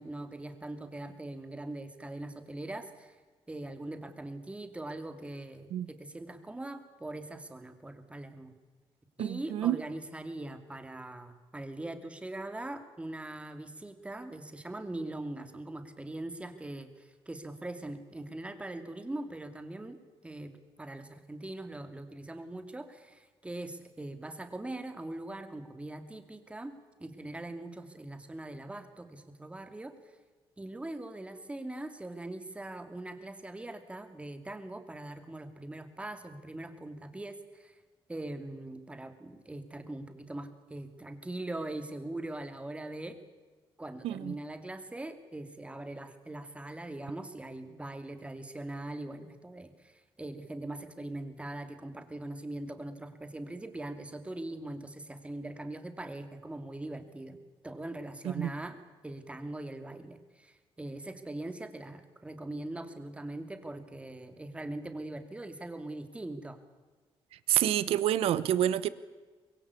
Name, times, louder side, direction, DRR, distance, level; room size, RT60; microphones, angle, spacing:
voice 1, 0.0-3.2 3.5-8.5 9.2-20.5 20.8-26.7 27.0-29.9 30.6-37.8 38.1-43.2 43.8-57.4 57.6-58.8 59.0-66.6, right 1 dB, 10° right, 2.6 m, -41 dB
voice 2, 9.2-9.8 44.0-44.3 58.2-58.5 67.5-68.9, right 12 dB, 90° right, 1.1 m, -28 dB
24.5 x 22.0 x 8.5 m
cardioid pair, 115°, 10 cm